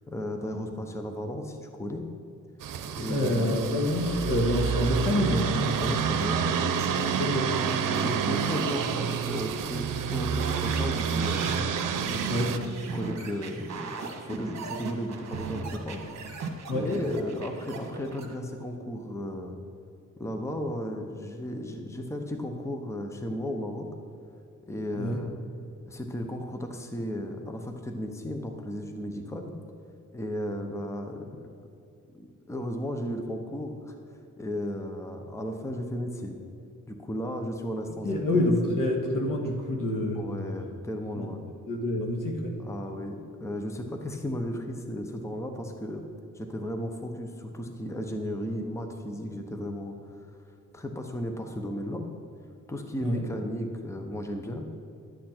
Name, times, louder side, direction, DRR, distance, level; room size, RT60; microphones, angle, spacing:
voice 1, 0.1-2.1 2.9-3.7 5.8-6.6 7.8-11.7 12.1-16.0 16.4-19.6 20.2-23.9 24.7-25.4 25.9-29.5 30.1-31.6 32.1-36.4 36.9-38.5 40.1-41.4 42.6-46.0 46.3-50.3 50.7-52.1 52.7-54.7, left 1 dB, 10° left, 4 dB, 0.7 m, -35 dB
sound 1, 2.6-12.6, right 7 dB, 85° right, 0.7 m, -28 dB
voice 2, 3.1-5.8 7.2-7.5 12.3-12.5 16.7-16.8 24.9-25.2 38.0-40.2 41.1-42.5 53.0-53.2, left 1 dB, 80° left, 1 dB, 1.7 m, -27 dB
sound 2, 6.3-6.4 6.7-7.1 7.4-9.6 9.9-18.4, right 4 dB, 55° right, 1.3 m, -38 dB
11.5 x 8.4 x 4.4 m, 2.5 s
wide cardioid pair, 140°, 32 cm